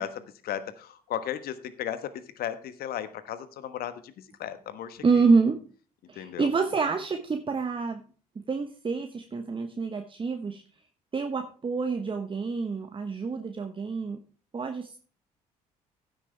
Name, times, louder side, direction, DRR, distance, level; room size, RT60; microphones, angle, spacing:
voice 1, 0.0-5.2 6.1-6.5, left 10 dB, 55° left, 13 dB, 1.3 m, -36 dB
voice 2, 5.0-5.6 6.1-8.0 8.5-10.6 11.1-14.2 14.5-15.0, right 4 dB, 25° right, 6 dB, 1.2 m, -27 dB
15.5 x 8.4 x 3.4 m, 0.40 s
figure-of-eight pair, 50°, 19 cm